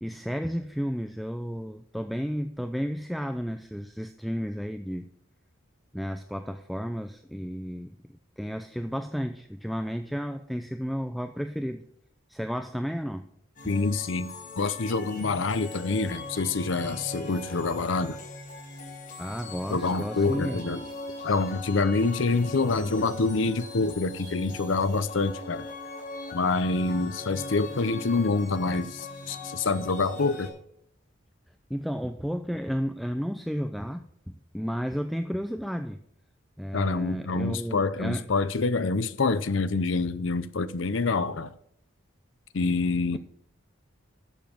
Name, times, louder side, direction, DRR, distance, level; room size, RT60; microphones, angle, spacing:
voice 1, 0.0-5.1 5.9-7.9 8.4-11.8 12.3-13.3 13.6-13.7 19.2-20.6 31.7-36.0 36.6-38.3, equal, ahead, 0.4 m, -32 dB
sound 1, 13.6-30.5, left 2 dB, 40° left, 5.3 m, -40 dB
voice 2, 13.7-18.2 19.7-20.8 21.2-25.6 26.3-30.5 36.7-41.5 42.5-43.2, left 3 dB, 75° left, 0.6 m, -26 dB
12.0 x 7.3 x 6.0 m
head